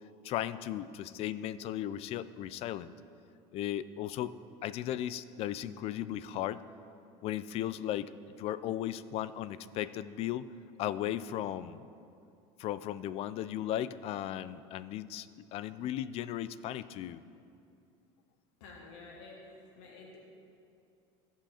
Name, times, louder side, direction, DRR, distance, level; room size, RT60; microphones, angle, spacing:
voice 1, 0.2-2.9 3.5-4.3 4.6-6.6 7.2-8.1 8.4-10.5 10.8-11.8 12.6-17.2, left 12 dB, 45° left, 15 dB, 0.3 m, -36 dB
voice 2, 18.6-20.2, left 3 dB, 80° left, -2 dB, 1.8 m, -50 dB
15.0 x 5.6 x 4.3 m, 2.5 s
supercardioid pair, 130°, 15 cm